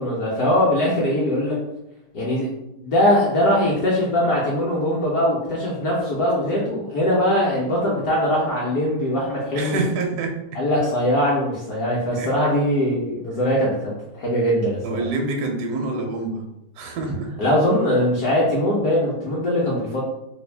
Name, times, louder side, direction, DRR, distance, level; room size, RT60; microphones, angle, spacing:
voice 1, 0.0-1.6 2.1-2.5 2.8-9.8 10.5-14.8 17.4-20.0, left 1 dB, 65° left, -6 dB, 0.9 m, -21 dB
voice 2, 9.5-10.6 12.2-12.3 14.8-16.4 16.8-17.3, right 3 dB, 75° right, 2 dB, 0.9 m, -27 dB
3.4 x 2.3 x 3.3 m, 0.88 s
omnidirectional pair, 2.4 m